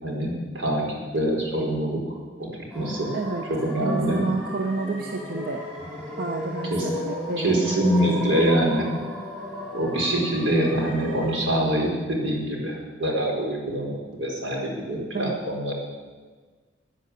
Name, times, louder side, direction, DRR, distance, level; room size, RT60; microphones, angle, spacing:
voice 1, 0.0-2.5 2.7-3.1 3.5-4.2 6.7-6.9 7.4-8.9 9.7-12.7 13.0-15.7, right 1 dB, 80° right, -1 dB, 4.5 m, -25 dB
sound 1, 2.7-11.4, equal, 5° right, 5.6 m, -35 dB
voice 2, 3.1-3.4 3.8-5.7 6.2-8.6 15.1-15.4, right 3 dB, 50° right, 4 dB, 0.9 m, -30 dB
16.5 x 9.8 x 8.4 m, 1.4 s
head